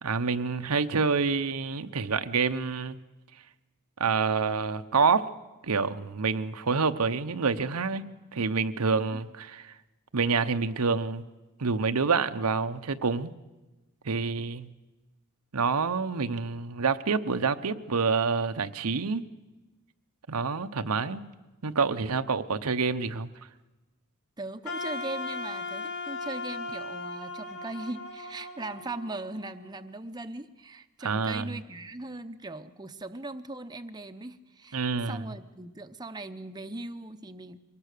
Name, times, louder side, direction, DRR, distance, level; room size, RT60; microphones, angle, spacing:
voice 1, 0.0-3.0 4.0-5.3 5.6-9.7 10.1-11.2 11.6-13.3 14.0-14.7 15.5-19.2 20.3-21.3 21.6-23.3 31.0-31.5 34.7-35.2, right 5 dB, 90° right, 9 dB, 0.9 m, -27 dB
voice 2, 24.4-37.6, right 2 dB, 20° right, 8 dB, 0.7 m, -39 dB
Wind instrument woodwind instrument, 24.6-29.7, left 3 dB, 50° left, 2.9 m, -37 dB
24.0 x 19.5 x 6.7 m, 1.1 s
head